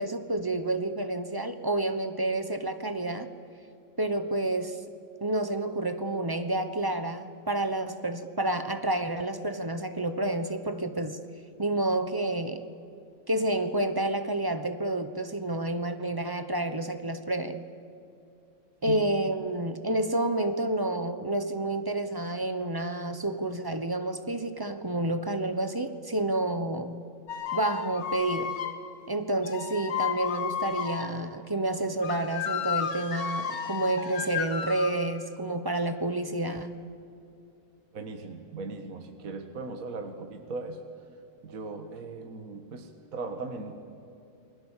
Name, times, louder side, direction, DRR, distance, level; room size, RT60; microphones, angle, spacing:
voice 1, 0.0-3.3 4.0-4.8 5.2-11.2 11.6-12.7 13.3-17.6 18.8-27.0 27.5-28.6 29.1-36.7, right 1 dB, 20° right, 8 dB, 0.7 m, -29 dB
sound 1, 27.3-28.8 29.4-31.1 32.0-35.1, left 8 dB, 70° left, 2.3 m, -33 dB
voice 2, 37.9-40.8 41.4-43.7, right 3 dB, 50° right, 4 dB, 1.8 m, -38 dB
29.5 x 21.0 x 7.4 m, 2.6 s
omnidirectional pair, 2.0 m